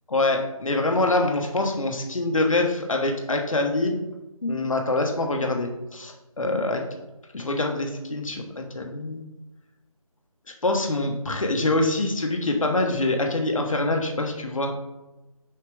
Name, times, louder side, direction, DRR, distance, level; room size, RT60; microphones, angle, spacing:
voice 1, 0.1-3.9 4.4-6.8 7.3-9.2 10.6-14.8, left 2 dB, 65° left, 3 dB, 1.2 m, -25 dB
6.6 x 4.8 x 3.5 m, 1.0 s
figure-of-eight pair, 180°, 19 cm